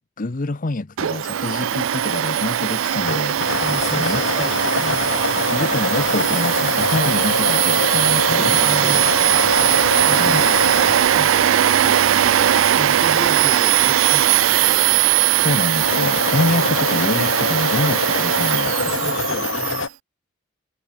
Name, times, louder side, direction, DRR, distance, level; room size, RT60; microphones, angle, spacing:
voice 1, 0.2-3.4 4.0-5.0 5.5-9.1 10.2-10.4 15.4-18.8, left 2 dB, 40° left, 0.8 m, -26 dB
Domestic sounds home sounds, 1.0-19.8, right 11 dB, 90° right, 0.4 m, -19 dB
sound 1, 3.0-12.2 15.7-19.9, left 3 dB, 75° left, 2.5 m, -25 dB
voice 2, 3.6-5.2 8.6-9.5 9.9-14.9 18.8-19.9, equal, ahead, 3.2 m, -34 dB
head